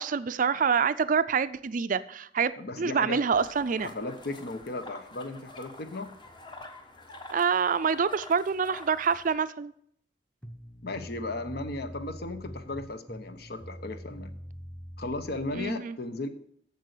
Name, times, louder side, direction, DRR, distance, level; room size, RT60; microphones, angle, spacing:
voice 1, 0.0-2.5 2.8-3.9 7.3-9.7 15.5-16.0, right 6 dB, 50° right, 14 dB, 0.4 m, -26 dB
voice 2, 2.6-3.2 3.8-6.1 10.8-14.3 15.0-16.3, left 2 dB, 60° left, 10 dB, 0.9 m, -36 dB
sound 1, 3.3-9.3, left 2 dB, 25° left, 1.0 m, -47 dB
sound 2, 10.4-15.7, equal, 5° left, 0.7 m, -44 dB
8.2 x 6.9 x 6.6 m, 0.68 s
head